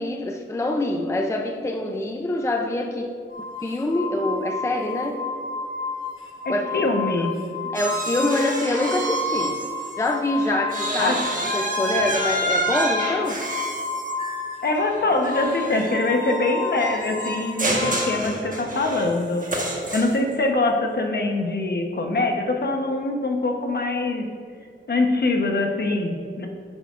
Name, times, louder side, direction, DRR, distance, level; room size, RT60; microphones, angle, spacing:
voice 1, 0.0-3.1 3.6-5.2 6.5-6.9 7.7-9.5 10.0-13.4, left 1 dB, 15° left, 3 dB, 0.5 m, -25 dB
sound 1, 3.3-18.2, left 5 dB, 75° left, 1.2 m, -32 dB
voice 2, 6.4-7.3 11.0-11.2 14.6-24.3 24.9-26.5, left 2 dB, 50° left, 3 dB, 1.0 m, -23 dB
sound 2, 7.7-10.1 10.4-20.3, right 2 dB, 40° right, 1.4 m, -28 dB
9.9 x 9.2 x 2.5 m, 2.3 s
wide cardioid pair, 130°, 21 cm